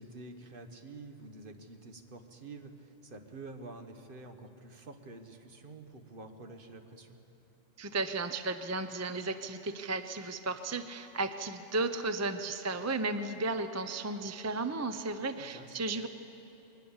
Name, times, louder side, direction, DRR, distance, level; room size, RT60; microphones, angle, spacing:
voice 1, 0.0-7.2 15.4-15.8, right 3 dB, 45° right, 6 dB, 1.4 m, -48 dB
voice 2, 7.8-16.1, right 3 dB, 20° right, 9 dB, 0.4 m, -34 dB
21.0 x 19.0 x 7.2 m, 3.0 s
omnidirectional pair, 1.3 m